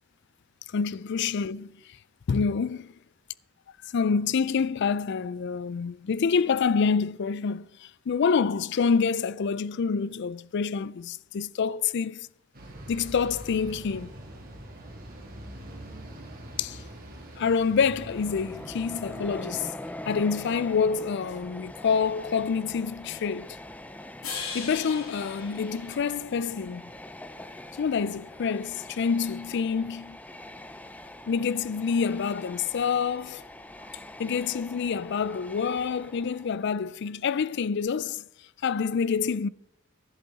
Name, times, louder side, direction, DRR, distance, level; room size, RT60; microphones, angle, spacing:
voice 1, 0.7-1.7 2.3-2.9 3.8-12.3 12.9-14.1 16.6-16.8 17.4-19.7 20.1-23.6 24.5-26.9 27.7-30.2 31.3-33.4 34.2-38.2 38.6-39.5, left 5 dB, 55° left, 0.4 m, -27 dB
sound 1, 12.5-19.6, right 1 dB, 45° right, 2.7 m, -44 dB
Train, 17.9-36.8, left 1 dB, 5° left, 0.6 m, -43 dB
sound 2, 24.2-26.6, left 5 dB, 90° left, 2.6 m, -39 dB
11.5 x 10.5 x 4.0 m
head